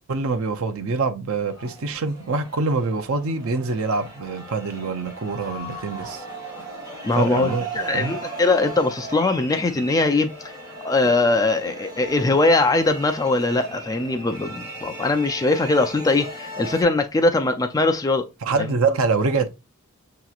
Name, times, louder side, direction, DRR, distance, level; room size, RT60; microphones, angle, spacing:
voice 1, 0.1-6.2 7.2-7.7 7.9-8.1 18.4-19.5, right 4 dB, 85° right, 0.6 m, -25 dB
sound 1, 1.4-16.8, right 2 dB, 15° right, 1.6 m, -37 dB
voice 2, 7.0-10.3 10.8-18.3, left 2 dB, 15° left, 0.4 m, -21 dB
6.7 x 2.9 x 2.4 m
head